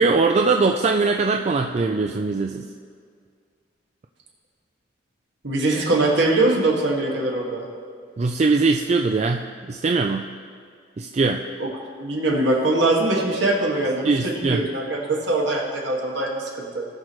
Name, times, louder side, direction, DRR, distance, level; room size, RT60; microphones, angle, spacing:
voice 1, 0.0-2.7 8.2-10.3 11.0-11.4 14.0-14.6, right 3 dB, 35° right, 3 dB, 0.3 m, -21 dB
voice 2, 5.4-7.7 11.6-11.7 12.0-16.9, right 2 dB, 65° right, -2 dB, 1.9 m, -22 dB
18.5 x 6.2 x 3.1 m, 2.2 s
head